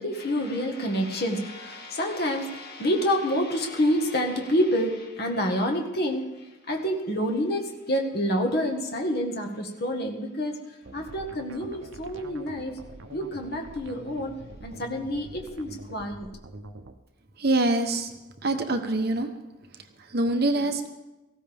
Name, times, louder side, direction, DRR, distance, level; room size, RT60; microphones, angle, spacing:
voice 1, 0.0-6.2 6.7-10.5 10.9-12.7 13.1-14.3 14.6-16.3, equal, 50° left, 3 dB, 1.7 m, -28 dB
sound 1, 10.8-17.0, right 2 dB, 70° right, 0.8 m, -45 dB
voice 2, 17.4-18.1 18.4-19.3 19.7-20.9, right 2 dB, 50° right, 6 dB, 1.1 m, -25 dB
18.0 x 15.5 x 3.6 m, 1.1 s
head